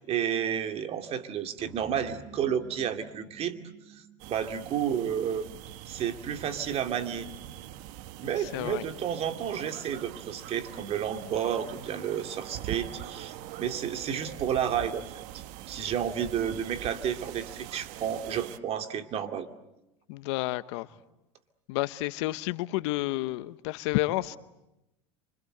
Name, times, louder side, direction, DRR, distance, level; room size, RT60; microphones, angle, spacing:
voice 1, 0.1-3.6 4.3-5.5 5.9-7.3 8.2-15.0 15.3-19.5, right 8 dB, 40° right, 2.5 m, -31 dB
sound 1, 1.6-5.9, right 3 dB, 20° right, 2.8 m, -51 dB
sound 2, 4.2-18.6, right 13 dB, 65° right, 1.1 m, -43 dB
voice 2, 8.4-8.8 20.1-20.9 21.7-24.4, left 19 dB, 70° left, 1.0 m, -30 dB
28.5 x 25.5 x 7.9 m
supercardioid pair, 110°, 15 cm